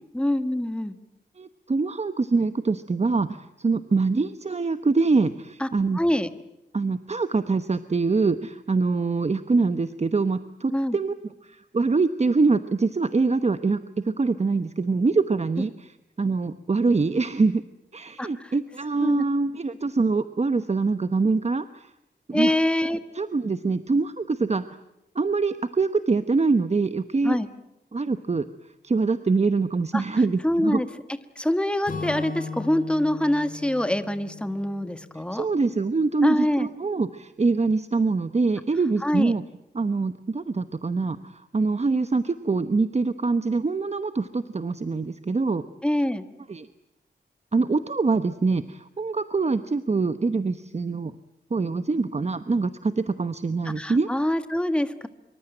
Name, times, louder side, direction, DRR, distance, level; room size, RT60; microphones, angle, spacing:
voice 1, 0.1-0.9 5.6-5.7 5.9-6.3 10.7-11.0 15.6-15.7 18.2-18.5 19.0-19.2 22.3-23.0 27.2-27.5 29.9-30.0 30.4-30.9 31.4-35.5 36.2-36.7 39.0-39.3 45.8-46.3 53.6-55.1, left 1 dB, 5° left, 10 dB, 1.5 m, -25 dB
voice 2, 1.4-6.0 6.7-11.1 11.4-17.6 17.9-21.9 22.3-22.5 23.1-24.6 25.1-27.4 27.9-28.4 28.8-30.8 35.3-39.4 39.7-45.6 46.5-46.7 47.5-51.1 51.5-54.1, right 4 dB, 35° right, 11 dB, 1.0 m, -24 dB
Acoustic guitar / Strum, 31.9-35.8, left 4 dB, 50° left, 5.3 m, -37 dB
25.5 x 24.0 x 9.0 m, 0.85 s
wide cardioid pair, 105°, 18 cm